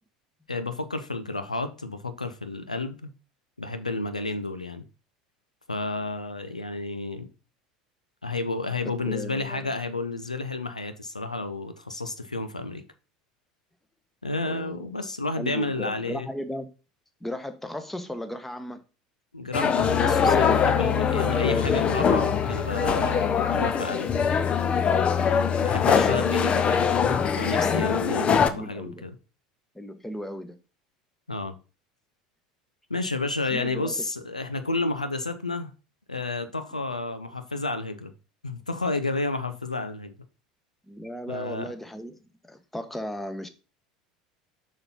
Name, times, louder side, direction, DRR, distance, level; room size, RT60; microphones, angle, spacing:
voice 1, 0.5-3.1 3.6-4.8 5.7-7.3 8.2-12.8 14.2-16.3 19.3-24.2 25.6-26.9 27.4-29.1 31.3-31.6 32.9-35.7 36.1-38.1 38.4-40.1 41.3-41.7, left 2 dB, 85° left, 0.8 m, -31 dB
voice 2, 9.0-9.7 14.4-14.9 15.3-16.7 17.2-18.8 28.3-29.0 29.7-30.6 33.5-33.9 40.9-42.2 42.5-43.5, left 1 dB, 5° left, 1.2 m, -36 dB
sound 1, 19.5-28.5, left 6 dB, 30° left, 0.9 m, -22 dB
6.7 x 6.3 x 4.2 m
figure-of-eight pair, 75°, 4 cm